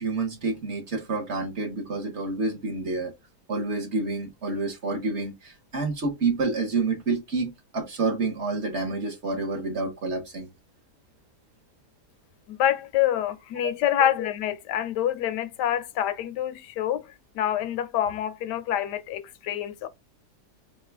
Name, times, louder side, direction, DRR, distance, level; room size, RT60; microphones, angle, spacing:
voice 1, 0.0-3.1 3.5-10.5, right 3 dB, 50° right, 1.0 m, -28 dB
voice 2, 12.5-17.1 17.3-19.9, left 11 dB, 80° left, 1.2 m, -26 dB
4.9 x 2.2 x 3.3 m
omnidirectional pair, 1.8 m